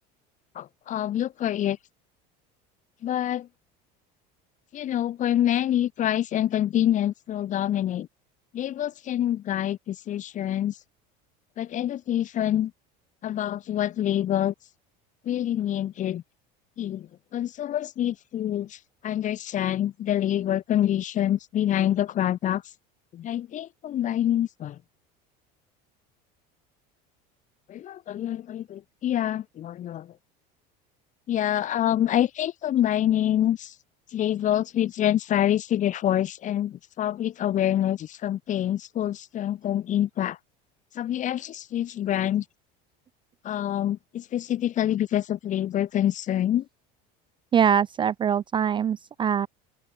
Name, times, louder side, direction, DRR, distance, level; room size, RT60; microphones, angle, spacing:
voice 1, 0.5-1.8 3.0-3.5 4.7-8.1 8.5-10.8 11.6-12.7 13.2-14.5 15.2-16.2 16.8-22.6 23.1-24.8 27.7-30.1 31.3-33.7 34.1-40.4 40.9-42.4 43.4-46.7, left 11 dB, 40° left, 2.8 m, -26 dB
voice 2, 47.5-49.5, right 8 dB, 25° right, 0.5 m, -23 dB
open air
cardioid pair, 145°, 20 cm